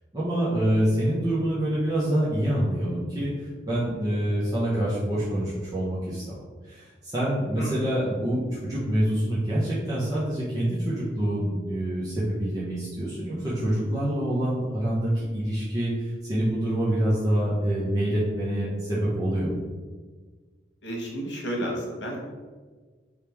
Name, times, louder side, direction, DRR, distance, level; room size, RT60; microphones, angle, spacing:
voice 1, 0.1-3.3 3.6-6.4 6.6-19.5, right 1 dB, 20° right, -9 dB, 0.9 m, -26 dB
voice 2, 20.8-22.2, right 1 dB, 85° left, -1 dB, 1.2 m, -31 dB
3.5 x 3.3 x 4.4 m, 1.4 s
head